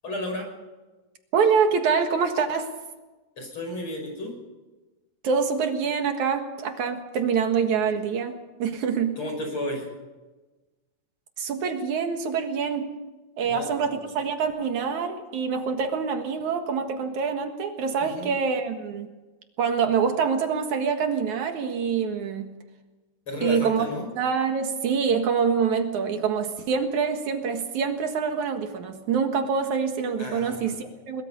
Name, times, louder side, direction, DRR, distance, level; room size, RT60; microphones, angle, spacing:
voice 1, 0.0-0.5 3.4-4.3 9.2-9.9 13.4-14.1 18.0-18.3 23.3-24.1 30.2-30.7, left 1 dB, 40° left, 2 dB, 6.6 m, -33 dB
voice 2, 1.3-2.7 5.2-8.3 8.6-9.2 11.4-12.9 13.4-19.1 19.6-22.5 23.4-23.9 24.2-31.2, right 6 dB, 75° right, 5 dB, 3.0 m, -25 dB
22.5 x 21.5 x 5.4 m, 1.2 s
omnidirectional pair, 3.5 m